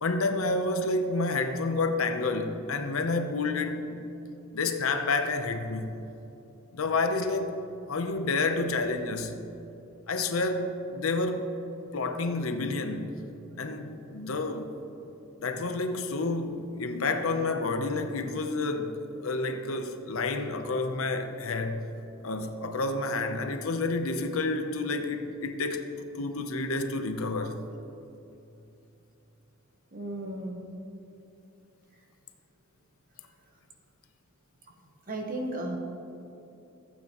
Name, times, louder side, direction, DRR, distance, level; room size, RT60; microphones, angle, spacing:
voice 1, 0.0-4.0 4.5-5.9 6.7-7.6 7.9-9.4 10.1-11.5 11.9-13.2 13.6-14.8 15.4-21.9 22.2-25.9 26.1-27.6, left 3 dB, 75° left, 0.7 m, -29 dB
voice 2, 29.9-30.6 35.1-35.8, right 1 dB, 40° right, 1.2 m, -34 dB
15.0 x 8.4 x 3.0 m
head